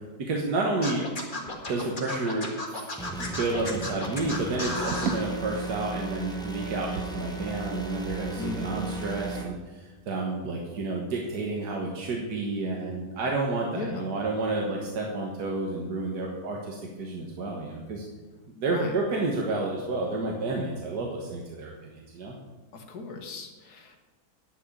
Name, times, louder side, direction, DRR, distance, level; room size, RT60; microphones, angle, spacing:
voice 1, 0.2-1.0 1.3-2.9 3.2-18.0 18.6-22.4, right 3 dB, 85° right, -1 dB, 1.9 m, -30 dB
Scratching (performance technique), 0.8-5.2, left 2 dB, 30° left, 2.0 m, -33 dB
sound 1, 3.0-9.4, right 2 dB, 5° left, 1.1 m, -36 dB
sound 2, 4.5-9.6, right 6 dB, 70° right, 1.2 m, -39 dB
voice 2, 8.4-8.8 13.7-14.2 18.7-19.0 22.7-24.0, left 3 dB, 75° left, 4 dB, 2.1 m, -36 dB
10.5 x 6.4 x 8.8 m, 1.3 s
omnidirectional pair, 1.7 m